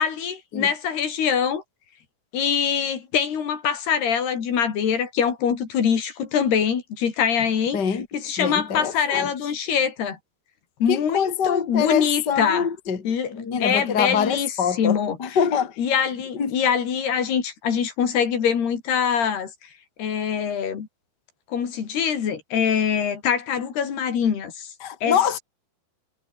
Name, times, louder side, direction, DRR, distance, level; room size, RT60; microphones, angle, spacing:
voice 1, 0.0-1.6 2.3-7.8 8.1-10.2 10.8-12.7 13.1-15.4 15.8-19.7 20.0-20.9 21.5-24.7 25.0-25.2, left 7 dB, 75° left, 5.5 m, -24 dB
voice 2, 7.7-8.1 8.4-9.3 10.9-13.0 13.3-15.8 16.3-16.5 24.8-25.4, left 7 dB, 30° left, 2.7 m, -24 dB
omnidirectional pair, 4.7 m